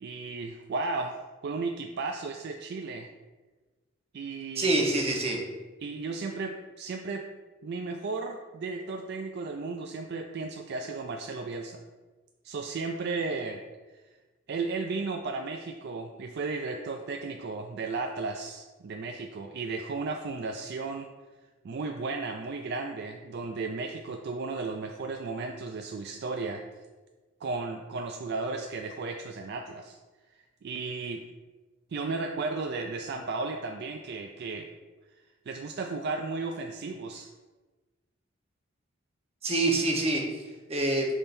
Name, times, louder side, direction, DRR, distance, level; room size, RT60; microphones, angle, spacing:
voice 1, 0.0-3.1 4.1-4.8 5.8-7.3 7.6-11.8 12.4-13.6 13.9-14.0 14.5-21.1 21.6-26.6 27.4-30.0 30.3-31.2 31.9-34.7 35.5-37.3, right 3 dB, 55° right, 4 dB, 0.4 m, -34 dB
voice 2, 4.6-5.4 39.4-40.2 40.7-41.0, right 2 dB, 30° right, -1 dB, 1.0 m, -25 dB
11.0 x 3.7 x 2.7 m, 1.3 s
head